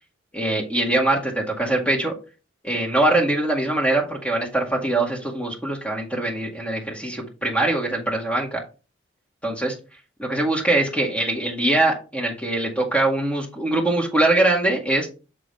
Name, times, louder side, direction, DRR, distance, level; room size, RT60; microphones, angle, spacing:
voice 1, 0.3-2.1 2.6-8.6 9.4-9.7 10.2-15.1, right 2 dB, 5° left, -1 dB, 1.8 m, -22 dB
6.6 x 5.3 x 3.3 m, 0.32 s
head